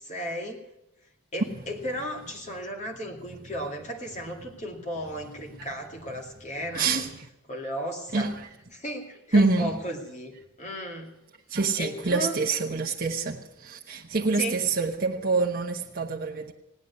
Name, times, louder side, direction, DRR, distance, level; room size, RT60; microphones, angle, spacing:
voice 1, 0.1-0.6 1.3-7.0 7.5-8.3 8.7-10.3 10.6-11.1 11.8-12.3 14.4-14.6, equal, 35° left, 2.4 m, -35 dB
voice 2, 6.7-7.3 8.1-8.5 9.3-9.8 11.5-16.5, right 3 dB, 40° right, 1.0 m, -26 dB
17.5 x 9.5 x 8.4 m
head